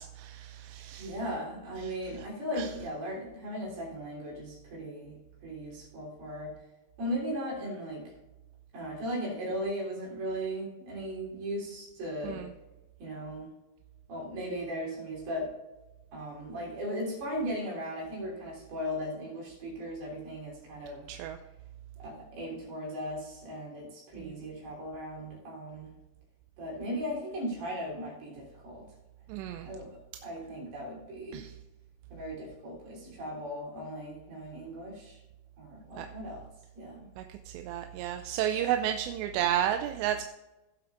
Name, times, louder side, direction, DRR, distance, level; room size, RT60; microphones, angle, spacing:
voice 1, 0.0-1.1 1.8-1.9 2.5-2.7 12.2-12.5 21.1-21.4 24.2-24.4 29.3-29.7 31.3-31.5 36.0-36.1 37.2-40.3, right 11 dB, 90° right, 6 dB, 2.8 m, -32 dB
voice 2, 1.0-6.6 7.0-8.1 8.7-12.5 13.0-13.5 14.1-15.5 16.1-21.1 22.0-25.9 26.6-28.9 29.6-31.4 32.1-35.2 35.6-36.5 36.8-37.1, equal, 65° right, -4 dB, 5.2 m, -37 dB
17.0 x 7.8 x 2.5 m, 1.0 s
omnidirectional pair, 4.9 m